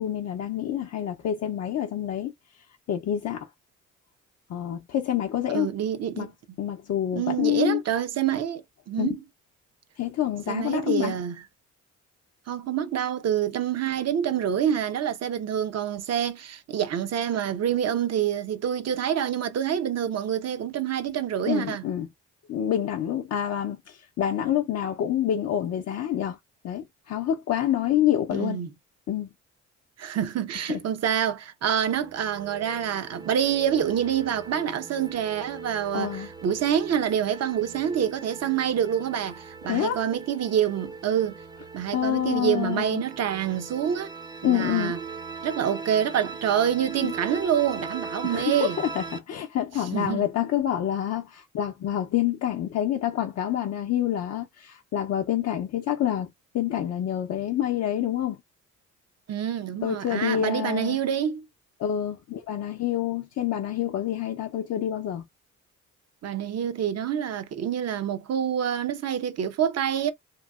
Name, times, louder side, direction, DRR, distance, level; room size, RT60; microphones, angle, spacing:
voice 1, 0.0-2.3 2.9-3.5 4.5-5.7 6.2-6.3 6.6-7.8 9.0-9.1 10.0-11.2 21.4-22.1 22.5-26.4 26.6-28.6 29.1-29.3 30.7-30.8 35.9-36.3 39.7-40.0 41.9-43.0 44.4-44.9 47.0-47.1 48.2-58.4 59.8-61.0 61.8-65.2, left 11 dB, 55° left, 0.6 m, -27 dB
voice 2, 5.5-6.3 7.1-9.2 10.5-11.4 12.5-21.8 28.3-28.7 30.0-41.4 41.7-44.1 44.4-45.0 45.4-48.8 49.9-50.3 59.3-61.5 66.2-70.1, right 9 dB, 60° right, 0.8 m, -27 dB
sound 1, 31.8-49.2, right 4 dB, 15° right, 0.6 m, -40 dB
3.0 x 2.6 x 2.3 m
cardioid pair, 90°, 30 cm